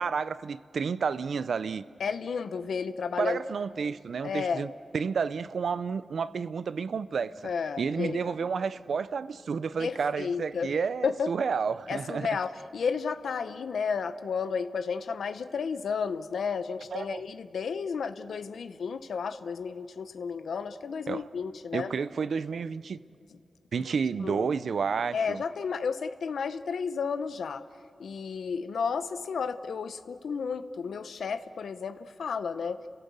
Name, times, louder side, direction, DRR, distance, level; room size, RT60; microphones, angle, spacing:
voice 1, 0.0-1.9 3.2-7.4 7.8-12.3 16.9-17.2 21.1-21.3 21.7-23.0 23.7-25.4, right 5 dB, 80° right, 0.6 m, -31 dB
voice 2, 2.0-3.4 4.2-4.6 7.4-8.3 9.8-10.7 11.0-11.3 11.9-21.9 24.2-24.5 25.1-27.6 28.0-32.8, left 5 dB, 90° left, 0.7 m, -32 dB
29.5 x 17.0 x 8.2 m
cardioid pair, 60°, 0 cm